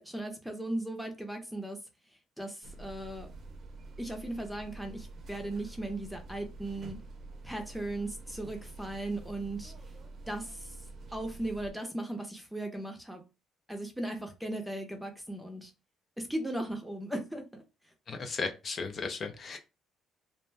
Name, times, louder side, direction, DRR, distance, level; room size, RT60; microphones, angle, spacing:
voice 1, 0.0-1.8 2.4-3.3 4.0-7.0 7.4-9.7 10.3-10.8 11.1-13.2 13.7-15.7 16.2-17.6, right 1 dB, ahead, 0.7 m, -37 dB
sound 1, 2.6-11.7, right 2 dB, 50° right, 0.6 m, -47 dB
voice 2, 18.1-19.6, left 4 dB, 45° left, 0.5 m, -35 dB
2.5 x 2.2 x 3.2 m
cardioid pair, 105°, 0 cm